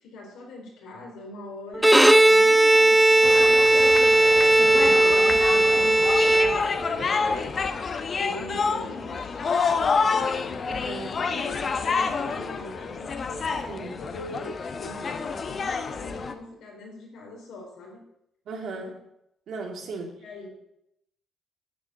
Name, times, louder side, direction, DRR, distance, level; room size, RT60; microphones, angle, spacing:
voice 1, 0.0-3.8 4.8-7.5 7.9-9.7 10.0-10.8 11.3-18.0 20.2-20.5, left 2 dB, 85° left, -1 dB, 4.3 m, -41 dB
Bowed string instrument, 1.7-7.0, right 1 dB, 5° right, 0.6 m, -17 dB
sound 1, 3.2-16.3, left 5 dB, 45° left, 1.1 m, -28 dB
voice 2, 4.5-5.0 10.7-11.4 13.7-14.0 18.5-19.0 19.5-20.1, right 3 dB, 70° right, 2 dB, 2.6 m, -36 dB
10.5 x 7.2 x 6.9 m, 0.79 s
cardioid pair, 90°, 0 cm